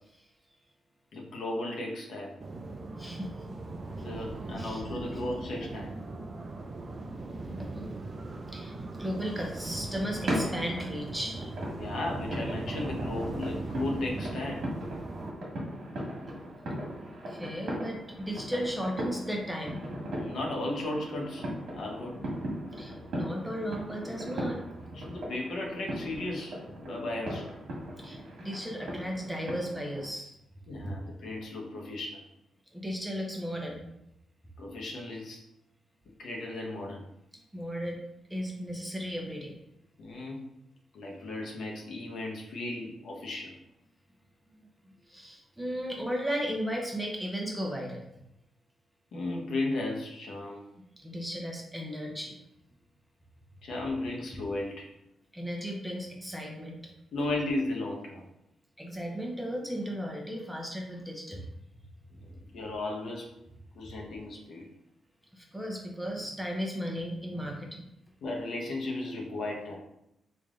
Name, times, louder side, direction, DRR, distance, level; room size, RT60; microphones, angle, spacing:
voice 1, 1.1-2.3 4.0-5.9 11.7-14.7 20.1-21.5 21.7-22.2 24.9-27.5 30.7-32.3 34.6-35.4 36.2-37.0 40.0-40.4 40.9-43.6 45.8-46.0 49.1-50.6 53.6-54.9 57.1-58.2 62.4-63.3 63.7-64.6 68.2-69.8, left 2 dB, 70° left, -1 dB, 0.8 m, -35 dB
sound 1, 2.4-15.3, right 2 dB, 35° right, 0.4 m, -39 dB
voice 2, 3.0-3.3 4.6-4.8 7.5-7.9 8.5-11.5 17.0-19.8 22.7-24.6 28.0-30.3 30.8-31.0 32.7-33.8 37.5-38.0 38.3-39.6 45.1-48.0 51.0-52.4 55.3-56.8 58.8-61.4 65.3-67.9, equal, 5° right, -1 dB, 0.7 m, -35 dB
sound 2, 10.2-30.1, equal, 70° right, 1.3 m, -38 dB
3.3 x 2.6 x 3.6 m, 0.82 s
cardioid pair, 110°, 0 cm